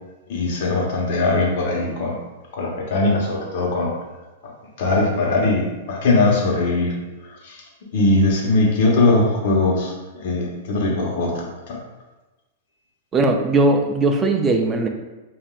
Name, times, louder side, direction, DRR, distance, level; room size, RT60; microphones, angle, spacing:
voice 1, 0.3-2.2 2.5-3.9 4.8-6.9 7.4-7.6 7.9-11.8, left 2 dB, 60° left, -2 dB, 1.2 m, -20 dB
voice 2, 13.1-14.9, right 2 dB, 20° right, 4 dB, 0.5 m, -18 dB
5.4 x 2.7 x 2.5 m, 1.1 s
hypercardioid pair, 135°, 0 cm